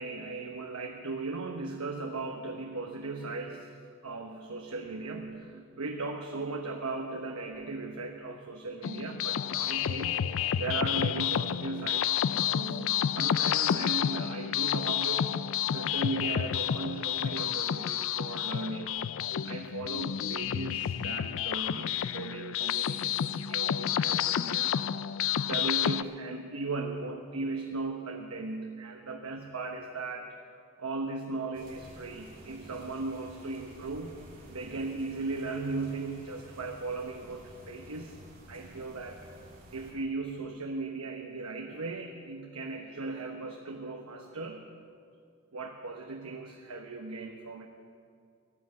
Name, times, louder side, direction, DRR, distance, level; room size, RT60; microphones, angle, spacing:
voice 1, 0.0-3.7 4.0-10.2 10.5-12.2 12.5-15.4 15.6-19.1 19.4-24.9 25.3-30.3 30.8-34.1 34.5-38.2 38.5-39.3 39.7-44.7 45.5-47.7, right 3 dB, 90° right, 3 dB, 1.0 m, -37 dB
sound 1, 8.8-26.0, left 9 dB, 65° left, 0.4 m, -30 dB
sound 2, 31.5-39.9, right 1 dB, 40° right, 2.7 m, -51 dB
13.5 x 9.8 x 8.0 m, 2.3 s
head